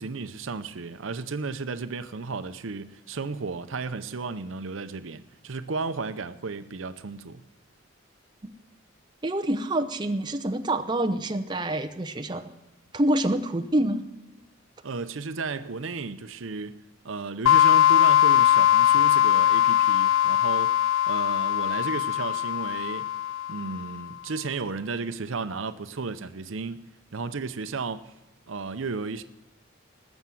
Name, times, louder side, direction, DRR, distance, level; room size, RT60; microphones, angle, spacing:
voice 1, 0.0-7.4 14.8-20.8 21.1-23.1 23.5-28.1 28.5-29.2, right 4 dB, 70° right, 0.7 m, -34 dB
voice 2, 9.2-12.5 12.9-14.0, right 1 dB, 20° right, 0.7 m, -26 dB
sound 1, 17.5-24.0, left 11 dB, 85° left, 0.4 m, -21 dB
19.0 x 7.2 x 7.6 m
head